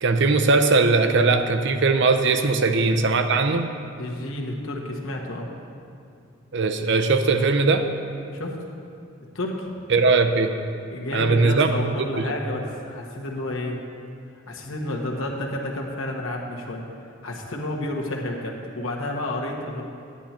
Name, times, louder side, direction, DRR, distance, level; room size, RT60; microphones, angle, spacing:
voice 1, 0.0-3.7 6.5-7.9 9.9-10.5 11.1-11.7 12.2-12.3, right 3 dB, 60° right, 7 dB, 0.6 m, -20 dB
voice 2, 4.0-5.5 8.3-8.6 9.3-9.7 10.9-13.8 14.5-16.8 17.2-19.8, left 1 dB, 85° left, 0 dB, 1.3 m, -30 dB
9.9 x 9.2 x 4.4 m, 2.5 s
head